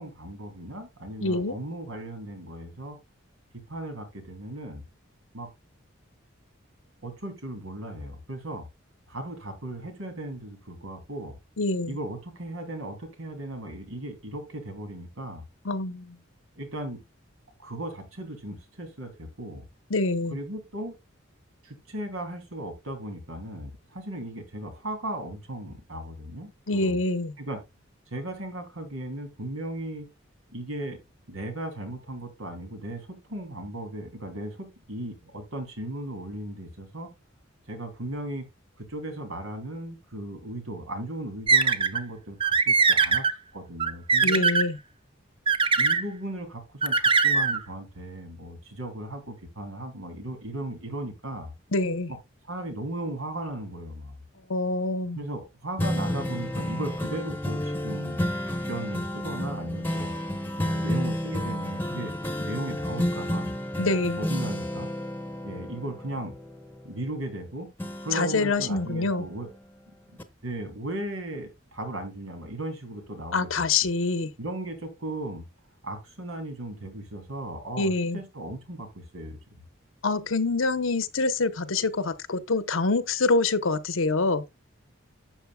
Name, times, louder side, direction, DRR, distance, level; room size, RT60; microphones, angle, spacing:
voice 1, 0.0-3.0 3.5-4.8 5.3-5.5 7.0-8.6 9.1-11.4 11.9-15.4 16.6-17.0 17.6-19.7 20.3-20.9 21.6-27.0 27.4-27.6 28.1-30.1 30.5-31.0 31.3-37.1 37.7-38.5 38.8-43.3 43.5-44.4 45.8-51.5 52.4-54.2 55.1-60.1 60.6-62.1 62.4-63.5 64.2-64.9 65.4-66.3 66.8-67.7 68.0-69.5 70.1-70.2 70.4-73.7 74.4-75.4 75.8-79.4, right 1 dB, 90° right, 3.0 m, -36 dB
voice 2, 1.2-1.6 11.6-12.0 15.6-16.2 19.9-20.4 26.7-27.3 44.2-44.8 51.7-52.1 54.5-55.2 63.8-64.2 68.1-69.2 73.3-74.3 77.8-78.2 80.0-84.4, left 3 dB, 80° left, 0.9 m, -25 dB
sound 1, 41.5-42.0 42.4-43.3 43.8-44.7 45.5-46.0 46.8-47.6, right 4 dB, 25° right, 0.6 m, -21 dB
sound 2, 55.8-67.4 67.8-69.7 70.2-70.3, left 1 dB, 10° left, 0.9 m, -31 dB
12.0 x 7.5 x 2.3 m
head